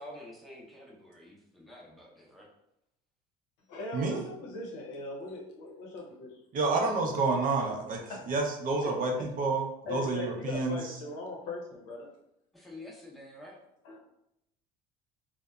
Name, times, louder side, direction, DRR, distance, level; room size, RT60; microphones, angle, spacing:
voice 1, 0.0-2.5 12.5-13.6, left 1 dB, ahead, -2 dB, 0.6 m, -48 dB
voice 2, 3.7-6.4 8.1-8.4 8.8-9.3 9.9-12.1 13.8-14.0, left 2 dB, 80° left, 0 dB, 0.7 m, -40 dB
voice 3, 6.5-8.0 8.3-10.8, right 3 dB, 45° right, 2 dB, 0.6 m, -29 dB
2.6 x 2.1 x 2.3 m, 0.81 s
supercardioid pair, 90°, 20 cm